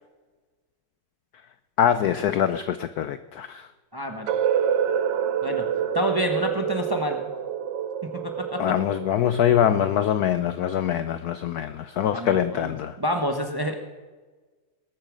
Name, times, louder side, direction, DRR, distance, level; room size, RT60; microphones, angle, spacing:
voice 1, 1.8-3.7 8.6-13.0, left 10 dB, 80° left, 12 dB, 0.8 m, -23 dB
voice 2, 3.9-4.3 5.4-5.7 5.9-7.2 8.0-8.6 12.1-13.8, equal, 15° right, 5 dB, 0.8 m, -28 dB
sound 1, 4.3-10.1, right 8 dB, 65° right, 1.3 m, -27 dB
20.0 x 8.8 x 6.3 m, 1.3 s
omnidirectional pair, 2.3 m